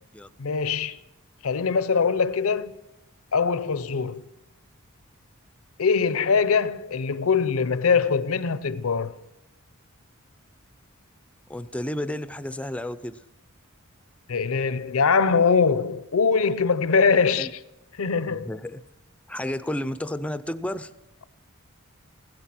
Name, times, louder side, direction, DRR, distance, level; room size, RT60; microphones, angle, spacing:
voice 1, 0.4-1.0 1.4-2.7 3.3-4.2 5.8-9.1 14.3-17.5 18.0-18.5, left 5 dB, 75° left, 0.6 m, -22 dB
voice 2, 11.5-13.2 17.4-17.5 18.3-18.8 19.3-20.9, left 1 dB, 5° left, 0.4 m, -31 dB
16.5 x 12.5 x 6.0 m
head